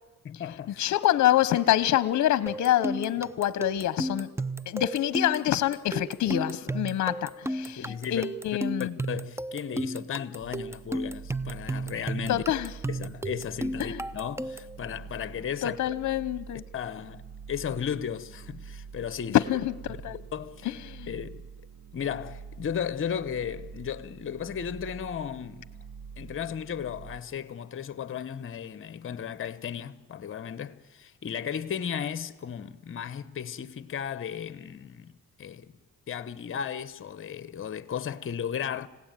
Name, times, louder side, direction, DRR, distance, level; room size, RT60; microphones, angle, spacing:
voice 1, 0.2-0.8 7.8-8.2 8.8-12.4 12.9-15.8 16.7-19.4 20.3-20.7 21.1-21.4 21.9-25.7 26.2-35.1 35.4-35.7 36.1-38.9, left 8 dB, 45° left, 1.1 m, -35 dB
voice 2, 0.8-4.3 4.7-8.9 12.3-12.7 13.8-14.0 15.6-16.6 19.3-20.2 20.6-21.1, left 12 dB, 65° left, 0.9 m, -26 dB
sound 1, 2.5-14.8, right 1 dB, 10° right, 0.7 m, -34 dB
sound 2, 10.4-27.2, right 6 dB, 70° right, 2.1 m, -46 dB
29.5 x 17.0 x 9.1 m
cardioid pair, 90°, 30 cm